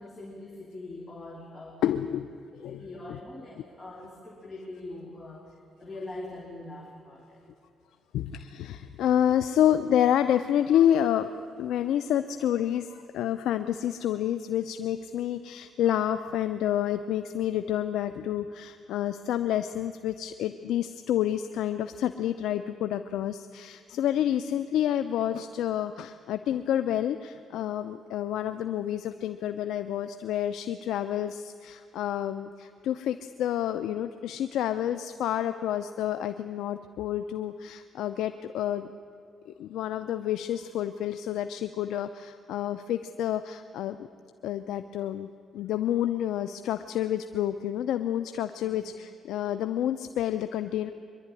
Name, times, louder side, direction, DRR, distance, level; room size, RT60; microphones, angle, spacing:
voice 1, 0.0-1.8 2.5-5.4 5.8-7.4 48.6-48.9, left 2 dB, 20° left, -2 dB, 3.2 m, -42 dB
voice 2, 1.8-2.3 2.6-2.8 8.1-11.3 11.6-38.9 39.5-44.1 44.4-50.9, left 11 dB, 85° left, 10 dB, 0.6 m, -29 dB
23.5 x 11.5 x 9.8 m, 2.5 s
cardioid pair, 90°, 0 cm